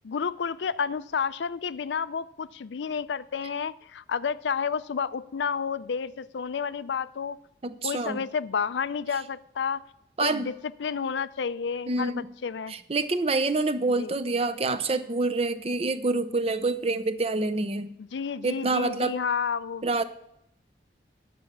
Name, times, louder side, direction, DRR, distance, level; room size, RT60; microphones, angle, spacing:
voice 1, 0.0-7.4 7.8-9.8 10.2-10.5 10.8-12.8 14.0-14.1 18.0-19.8, left 6 dB, 80° left, 16 dB, 0.4 m, -30 dB
voice 2, 7.6-8.2 10.2-10.5 11.9-12.3 12.7-17.9 18.4-19.2 19.8-20.0, right 3 dB, 35° right, 12 dB, 0.5 m, -27 dB
9.4 x 6.6 x 7.2 m, 0.77 s
head